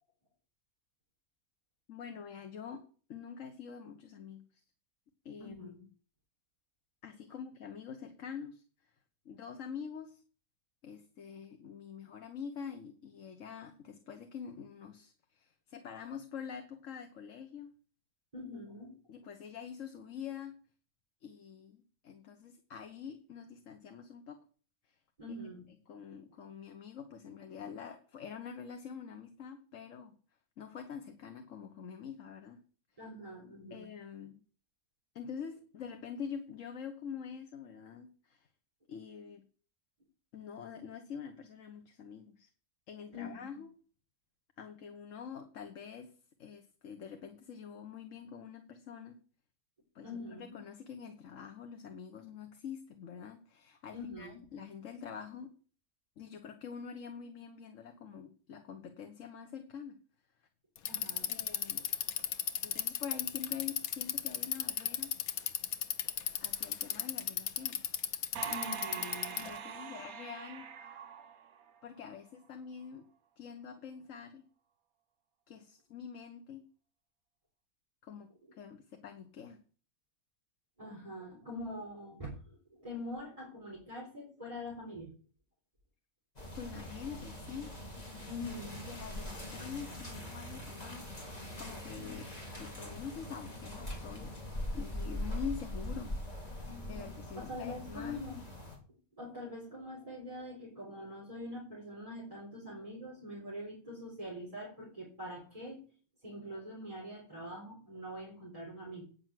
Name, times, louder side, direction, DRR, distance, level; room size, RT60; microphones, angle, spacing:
voice 1, 1.9-2.8 3.1-4.6 5.2-5.8 7.0-8.6 9.2-10.2 10.8-17.7 19.1-20.5 21.2-24.4 24.9-25.0 25.9-30.1 30.6-32.6 33.7-34.4 35.1-38.5 38.9-39.4 40.3-42.5 42.9-43.7 44.6-46.1 46.4-49.2 49.9-55.5 56.2-60.0 61.3-61.9 62.6-65.1 66.4-67.8 69.4-70.7 71.8-73.0 73.4-74.5 75.5-76.6 78.0-79.6 86.5-87.7 88.9-92.3 92.6-94.4 94.7-96.1 96.4-98.2, left 7 dB, 65° left, 6 dB, 1.4 m, -46 dB
voice 2, 5.4-5.8 18.3-18.9 25.2-25.6 33.0-33.9 43.1-43.6 50.0-50.6 53.9-54.4 60.9-61.3 68.4-69.5 69.7-69.8 80.8-85.1 88.3-88.9 91.9-92.1 96.6-98.4 99.2-105.8 106.2-109.0, left 1 dB, 25° right, -5 dB, 4.2 m, -44 dB
Bicycle, 60.8-69.6, left 9 dB, 85° left, 1.3 m, -34 dB
sound 1, 68.3-72.0, right 7 dB, 90° right, 1.4 m, -43 dB
sound 2, 86.4-98.8, left 1 dB, 30° left, 3.2 m, -42 dB
9.4 x 6.6 x 7.6 m, 0.41 s
omnidirectional pair, 1.5 m